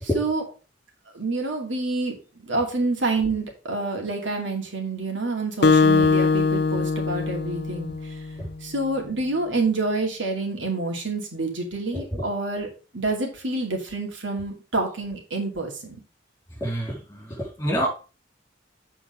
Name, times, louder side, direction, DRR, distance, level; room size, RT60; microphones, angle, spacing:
voice 1, 0.0-0.4 1.1-8.2 8.6-12.7 12.9-16.0, right 3 dB, 90° right, 1 dB, 2.5 m, -28 dB
Acoustic guitar, 5.6-8.4, left 4 dB, 60° left, 0.5 m, -21 dB
voice 2, 11.9-12.2 16.6-17.9, equal, 15° left, -2 dB, 3.9 m, -27 dB
8.0 x 4.5 x 5.1 m, 0.34 s
head